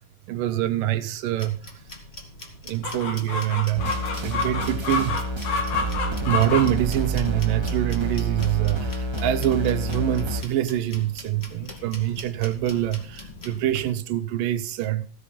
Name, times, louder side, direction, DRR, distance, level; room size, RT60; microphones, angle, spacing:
voice 1, 0.3-1.6 2.7-3.9 4.2-5.2 6.3-15.0, right 13 dB, 70° right, 2.4 m, -25 dB
sound 1, 1.3-13.6, left 1 dB, 20° left, 1.9 m, -44 dB
Chicken rooster, 2.8-13.9, left 4 dB, 85° left, 4.7 m, -32 dB
sound 2, 3.7-10.4, right 2 dB, 25° right, 0.5 m, -28 dB
15.5 x 9.0 x 5.7 m
omnidirectional pair, 4.2 m